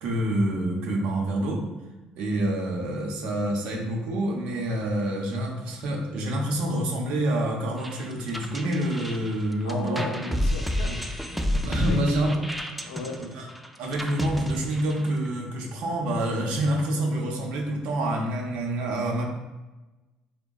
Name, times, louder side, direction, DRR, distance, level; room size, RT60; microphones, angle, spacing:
voice 1, 0.0-1.6 2.2-10.4 10.8-11.0 11.6-12.4 13.2-13.5 13.8-19.2, right 1 dB, 75° right, 0 dB, 0.6 m, -27 dB
sound 1, 7.8-15.3, left 1 dB, 5° right, 0.3 m, -31 dB
voice 2, 9.6-12.0 12.3-12.4 12.8-13.2, left 3 dB, 85° left, 2 dB, 0.5 m, -38 dB
3.6 x 2.1 x 2.3 m, 1.1 s
supercardioid pair, 70°, 3 cm